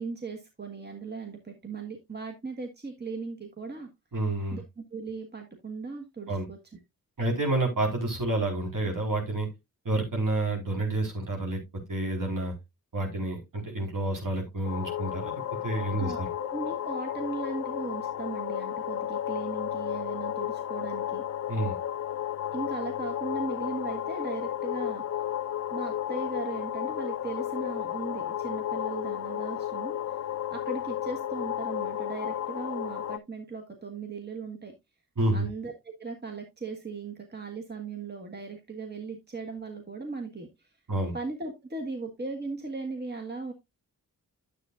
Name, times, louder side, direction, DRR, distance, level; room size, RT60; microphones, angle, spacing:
voice 1, 0.0-3.9 4.5-6.6 16.0-21.2 22.5-25.0 25.7-30.0 30.5-34.7 35.3-40.7 41.1-43.5, right 4 dB, 30° right, 3 dB, 1.6 m, -37 dB
voice 2, 4.1-4.6 6.3-6.5 7.2-9.5 9.8-11.6 11.9-12.5 12.9-16.1 21.5-21.7 35.2-35.5 40.9-41.1, right 2 dB, 60° right, 1 dB, 4.4 m, -29 dB
sound 1, 14.6-33.2, left 11 dB, 45° left, 0.5 m, -33 dB
10.0 x 8.0 x 2.5 m, 0.21 s
cardioid pair, 60°, 36 cm